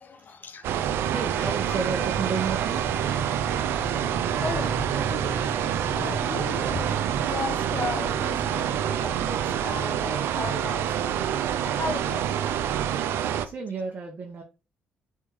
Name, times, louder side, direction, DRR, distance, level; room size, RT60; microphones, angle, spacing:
voice 1, 0.0-1.1 1.4-1.8 3.3-3.4 3.7-12.5, left 4 dB, 50° left, 0.8 m, -37 dB
sound 1, 0.6-13.5, right 9 dB, 75° right, 0.4 m, -27 dB
sound 2, 0.9-12.1, equal, 5° right, 0.7 m, -40 dB
voice 2, 1.1-2.8 13.4-14.4, right 5 dB, 45° right, 1.0 m, -31 dB
4.5 x 3.5 x 3.1 m
supercardioid pair, 55°, 4 cm